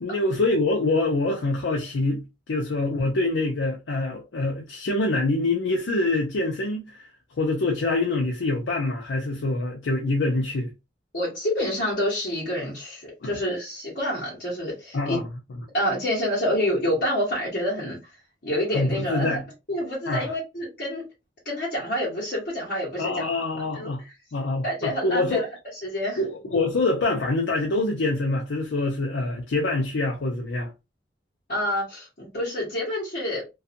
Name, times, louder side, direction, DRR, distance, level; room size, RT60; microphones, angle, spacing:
voice 1, 0.0-7.1 7.4-10.7 13.2-13.4 14.9-15.3 18.7-19.4 20.1-20.3 23.0-24.0 24.3-25.5 26.2-30.7, left 2 dB, 85° left, 0.5 m, -25 dB
voice 2, 11.1-15.2 15.7-18.0 18.4-19.4 19.7-21.0 21.4-23.3 23.7-23.9 24.6-25.5 25.8-26.2 31.5-33.4, equal, 50° left, 1.0 m, -27 dB
2.7 x 2.3 x 2.5 m
head